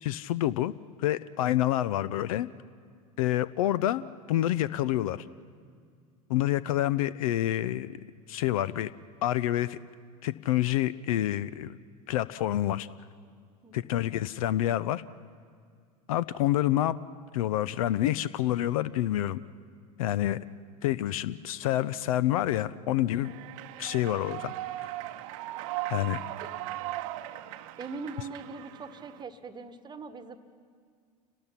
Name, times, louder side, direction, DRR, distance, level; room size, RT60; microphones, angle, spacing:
voice 1, 0.0-0.7 1.0-2.5 3.2-4.0 4.3-5.2 6.3-7.9 8.3-8.9 9.2-9.8 10.2-11.7 12.1-12.9 13.7-15.0 16.1-17.0 17.3-19.4 20.0-20.4 20.8-23.3 23.8-24.5 24.8-24.9 25.9-26.2, left 13 dB, 60° left, 18 dB, 0.6 m, -27 dB
voice 2, 13.6-13.9 26.4-26.5 27.8-30.4, right 4 dB, 20° right, 11 dB, 1.2 m, -41 dB
Human voice / Clapping / Cheering, 23.2-29.2, right 15 dB, 55° right, 0.8 m, -38 dB
29.0 x 19.0 x 5.8 m, 2.1 s
figure-of-eight pair, 80°, 20 cm